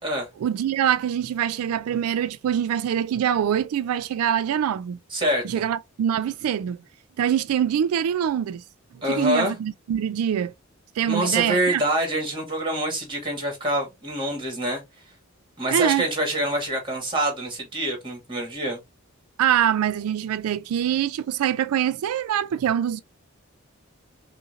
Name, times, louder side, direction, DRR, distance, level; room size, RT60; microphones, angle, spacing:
voice 1, 0.4-5.0 5.4-6.8 7.2-8.6 9.0-10.5 11.0-11.8 15.7-16.1 19.4-23.0, right 9 dB, 85° right, 0.3 m, -24 dB
voice 2, 5.1-5.6 9.0-9.5 11.1-14.8 15.6-18.8, right 1 dB, 20° right, 2.0 m, -26 dB
5.5 x 2.6 x 2.6 m
head